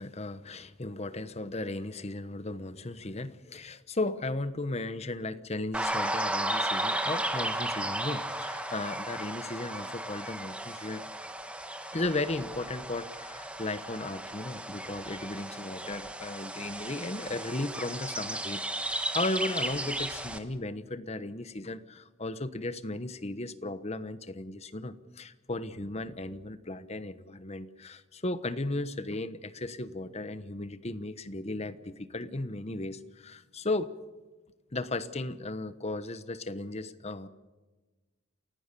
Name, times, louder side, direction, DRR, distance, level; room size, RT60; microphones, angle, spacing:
voice 1, 0.0-11.0 11.9-33.9 34.7-37.3, left 2 dB, 30° left, 13 dB, 1.1 m, -35 dB
sound 1, 5.7-20.4, right 1 dB, 5° right, 1.5 m, -34 dB
28.5 x 16.0 x 6.9 m, 1.2 s
head